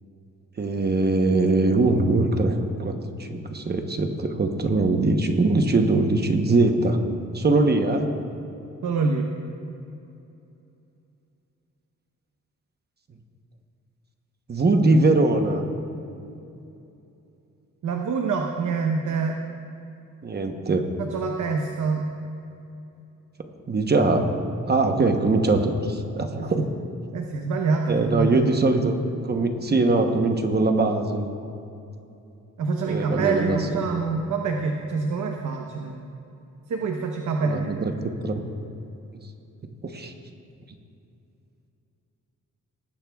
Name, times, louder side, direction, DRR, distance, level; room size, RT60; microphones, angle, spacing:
voice 1, 0.6-7.0 7.3-8.1 14.5-15.6 20.2-20.8 23.7-24.3 24.7-26.7 27.9-29.0 29.2-31.3 32.8-33.6 37.4-38.4 39.9-40.1, right 2 dB, 35° right, 5 dB, 0.9 m, -22 dB
voice 2, 8.8-9.3 17.8-19.4 21.0-22.0 26.4-26.6 27.1-28.7 32.6-36.0 36.7-38.0, right 4 dB, 70° right, 2 dB, 1.0 m, -26 dB
19.0 x 15.0 x 2.3 m, 2.8 s
wide cardioid pair, 140°, 31 cm